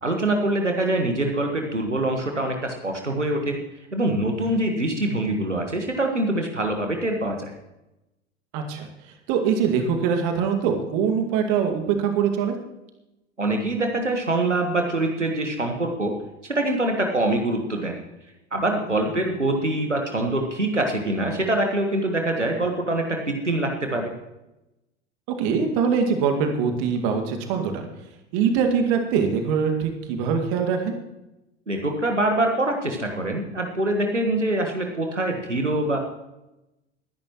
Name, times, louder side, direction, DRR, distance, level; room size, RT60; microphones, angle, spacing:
voice 1, 0.0-3.6 3.9-7.5 13.4-16.1 16.4-18.0 18.5-24.1 31.7-36.0, right 1 dB, 90° right, 3 dB, 1.5 m, -24 dB
voice 2, 8.5-8.9 9.3-12.6 25.4-27.8 28.3-30.9, right 6 dB, 45° right, 5 dB, 2.1 m, -23 dB
21.5 x 10.5 x 3.1 m, 0.95 s
figure-of-eight pair, 85°, 35 cm